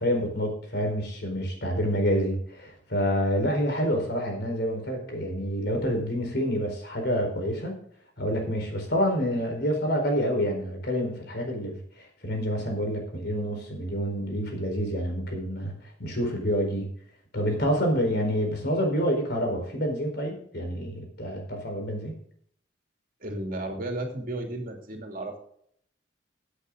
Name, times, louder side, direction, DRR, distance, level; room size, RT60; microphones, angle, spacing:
voice 1, 0.0-7.7 8.2-15.7 16.0-16.9 17.3-22.1, equal, 60° left, 3 dB, 4.3 m, -28 dB
voice 2, 23.2-25.4, right 1 dB, 50° right, 3 dB, 2.9 m, -33 dB
16.0 x 8.2 x 3.8 m, 0.64 s
head